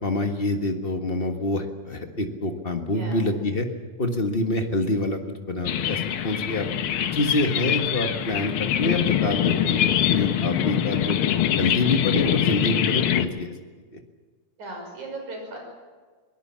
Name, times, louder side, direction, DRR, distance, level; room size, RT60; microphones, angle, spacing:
voice 1, 0.0-3.7 4.0-6.7 7.1-11.2 11.6-13.5 13.9-14.0, left 2 dB, 40° left, 5 dB, 0.8 m, -26 dB
sound 1, 5.7-13.3, left 10 dB, 70° left, 1.3 m, -24 dB
voice 2, 14.6-15.6, right 2 dB, 70° right, 2 dB, 7.3 m, -37 dB
23.5 x 19.0 x 7.5 m, 1.4 s
omnidirectional pair, 3.6 m